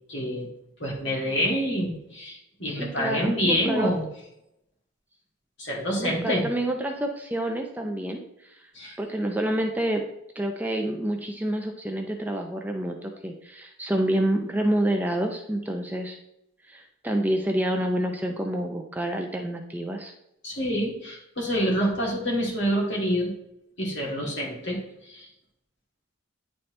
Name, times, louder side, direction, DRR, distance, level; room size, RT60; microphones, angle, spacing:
voice 1, 0.1-0.5 0.8-4.0 5.6-6.5 8.7-9.0 20.4-23.3 23.8-24.8 25.1-25.3, equal, 60° left, -3 dB, 2.5 m, -27 dB
voice 2, 2.7-3.9 6.0-8.2 9.0-10.0 10.4-16.2 16.7-20.1, right 1 dB, 10° right, 3 dB, 0.5 m, -28 dB
9.6 x 4.3 x 3.2 m, 0.81 s
head